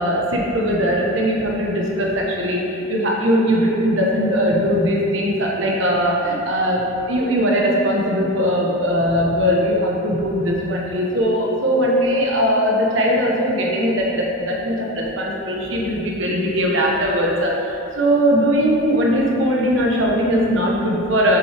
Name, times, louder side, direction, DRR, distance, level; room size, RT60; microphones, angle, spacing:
voice 1, 0.0-21.4, equal, 60° right, -3 dB, 1.2 m, -20 dB
7.9 x 6.0 x 3.5 m, 2.9 s
head